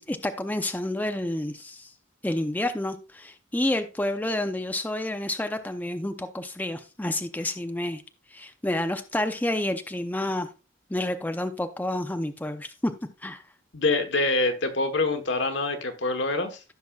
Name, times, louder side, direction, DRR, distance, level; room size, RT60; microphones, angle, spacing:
voice 1, 0.0-1.9 2.2-8.0 8.3-10.5 10.9-12.9 13.2-13.4, left 1 dB, 10° left, 0.5 m, -29 dB
voice 2, 13.7-16.6, left 2 dB, 75° left, 1.2 m, -25 dB
15.0 x 5.8 x 2.3 m
head